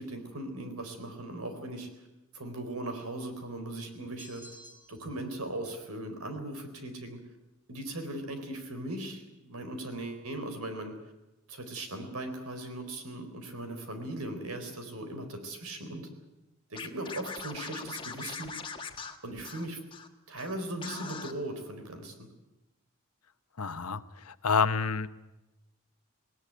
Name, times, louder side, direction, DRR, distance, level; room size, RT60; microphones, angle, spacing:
voice 1, 0.0-1.9 2.3-4.4 4.9-7.2 7.7-10.9 11.5-16.1 16.7-18.5 19.2-19.8 20.3-22.3, right 1 dB, 85° right, 7 dB, 4.2 m, -38 dB
sound 1, 4.2-5.2, left 1 dB, 10° right, 2.9 m, -51 dB
Scratching (performance technique), 16.7-20.1 20.4-20.5 20.8-21.3, left 5 dB, 20° left, 1.4 m, -41 dB
voice 2, 23.6-25.1, left 5 dB, 85° left, 12 dB, 1.0 m, -28 dB
19.0 x 18.5 x 9.2 m, 0.99 s
head